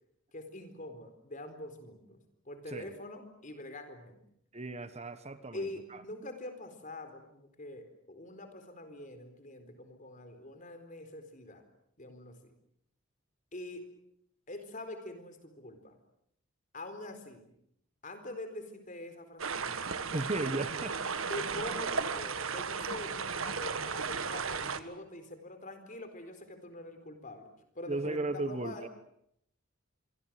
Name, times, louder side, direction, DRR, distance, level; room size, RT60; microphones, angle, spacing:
voice 1, 0.3-4.2 5.5-11.6 12.0-12.5 13.5-13.8 14.5-16.0 16.7-17.5 18.0-19.9 21.3-27.5 27.7-28.9, left 1 dB, 40° left, 8 dB, 4.3 m, -44 dB
voice 2, 4.5-5.7 20.1-21.0 27.9-28.9, right 2 dB, 30° right, 11 dB, 1.4 m, -35 dB
sound 1, 19.4-24.8, right 5 dB, 85° right, 1.6 m, -35 dB
26.5 x 24.0 x 7.7 m, 0.74 s
head